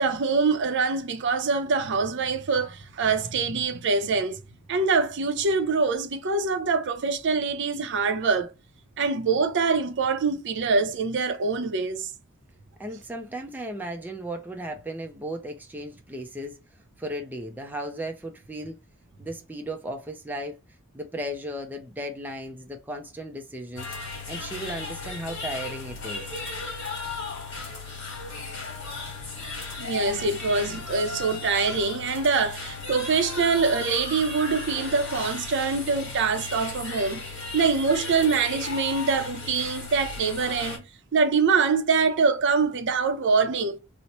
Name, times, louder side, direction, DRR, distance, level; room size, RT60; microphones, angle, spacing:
voice 1, 0.0-4.4 4.7-8.5 9.0-12.1 29.8-37.2 37.5-40.8 41.1-43.8, right 4 dB, 60° right, 0.5 m, -24 dB
voice 2, 12.8-16.6 17.0-18.8 19.2-20.6 20.9-23.9 24.3-26.2, right 1 dB, 10° right, 0.4 m, -35 dB
sound 1, 23.7-40.8, left 3 dB, 60° left, 1.4 m, -35 dB
2.9 x 2.1 x 4.0 m
head